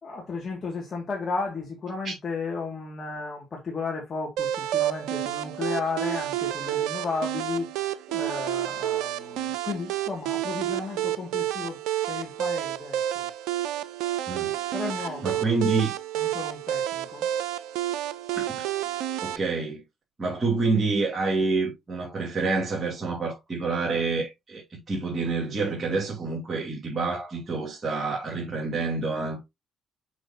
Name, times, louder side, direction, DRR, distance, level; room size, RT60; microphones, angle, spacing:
voice 1, 0.0-11.8 12.1-13.3 14.7-15.5 16.2-17.3, left 4 dB, 45° left, 2.3 m, -34 dB
sound 1, 4.4-19.4, right 12 dB, 80° right, 0.5 m, -30 dB
voice 2, 14.3-14.6 15.2-15.9 19.2-19.8 20.2-29.4, right 3 dB, 40° right, 3.0 m, -27 dB
6.4 x 5.8 x 2.9 m
hypercardioid pair, 50°, 0 cm